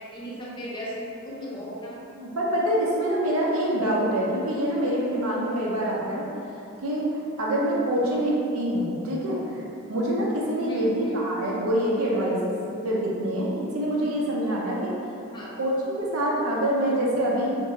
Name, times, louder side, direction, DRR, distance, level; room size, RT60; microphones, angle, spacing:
voice 1, 0.1-2.0 8.0-8.1 10.7-11.2 15.3-15.5, equal, 20° left, -6 dB, 0.5 m, -36 dB
voice 2, 2.2-6.2 6.8-7.1 7.4-9.6 9.9-12.5 12.8-14.9 15.6-17.5, right 1 dB, 80° right, -4 dB, 0.7 m, -25 dB
2.6 x 2.5 x 4.0 m, 2.7 s
head